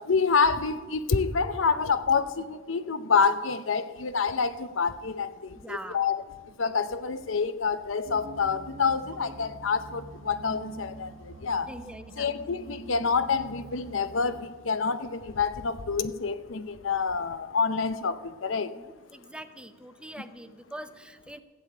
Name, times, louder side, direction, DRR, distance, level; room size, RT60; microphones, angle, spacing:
voice 1, 0.0-6.2 6.6-11.7 12.2-18.8, left 5 dB, 85° left, 0.7 m, -27 dB
voice 2, 5.5-6.0 11.6-12.3 18.8-21.4, right 1 dB, 5° right, 0.6 m, -43 dB
sound 1, 8.0-14.5, right 2 dB, 60° right, 1.4 m, -45 dB
14.5 x 6.7 x 8.6 m
head